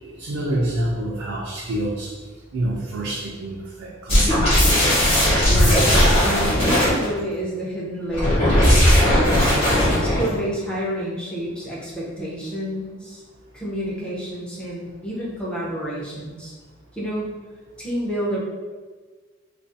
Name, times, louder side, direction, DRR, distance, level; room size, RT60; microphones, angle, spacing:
voice 1, 0.0-2.1 2.5-4.5, right 1 dB, 75° right, -4 dB, 0.4 m, -27 dB
sound 1, 4.1-7.1 8.1-10.3, equal, 30° left, 1.0 m, -17 dB
voice 2, 5.5-6.0 6.2-9.4 9.7-13.2 13.5-16.5 16.9-17.3 17.8-18.4, equal, 5° left, -6 dB, 0.5 m, -29 dB
2.4 x 2.3 x 2.5 m, 1.4 s
head